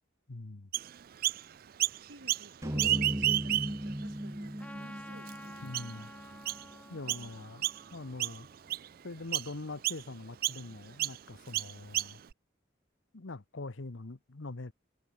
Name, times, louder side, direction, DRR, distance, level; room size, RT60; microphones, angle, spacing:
voice 1, 0.3-0.7 5.6-6.1 6.9-7.7 7.9-8.5 9.0-12.2 13.1-14.7, left 2 dB, 80° left, 1.1 m, -43 dB
Chirp tweet, 0.7-1.4 1.8-2.5 2.7-3.9 4.5-4.6 5.3-5.4 5.7-6.0 6.5-6.6 7.1-7.3 7.6-7.9 8.2-8.9 9.3-9.5 9.8-10.0 10.4-10.6 11.0-11.2 11.5-12.3, right 14 dB, 50° right, 0.4 m, -31 dB
voice 2, 2.1-5.7 6.9-7.4, right 1 dB, 85° right, 5.5 m, -53 dB
sound 1, 2.6-6.9, equal, 15° right, 1.6 m, -38 dB
Trumpet, 4.6-9.2, left 1 dB, 5° left, 1.5 m, -52 dB
head